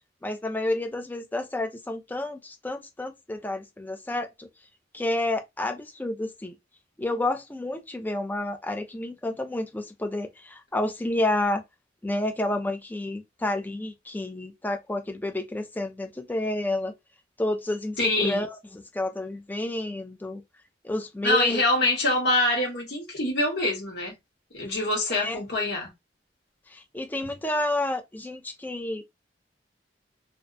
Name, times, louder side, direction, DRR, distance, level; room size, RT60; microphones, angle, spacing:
voice 1, 0.2-4.5 4.9-6.5 7.0-11.6 12.0-16.9 17.4-20.4 20.8-21.6 24.7-24.8 25.2-25.4 26.7-29.0, left 1 dB, 10° left, 0.3 m, -30 dB
voice 2, 18.0-18.5 21.2-24.1 24.5-25.9, left 2 dB, 65° left, 1.2 m, -25 dB
2.5 x 2.1 x 2.4 m
head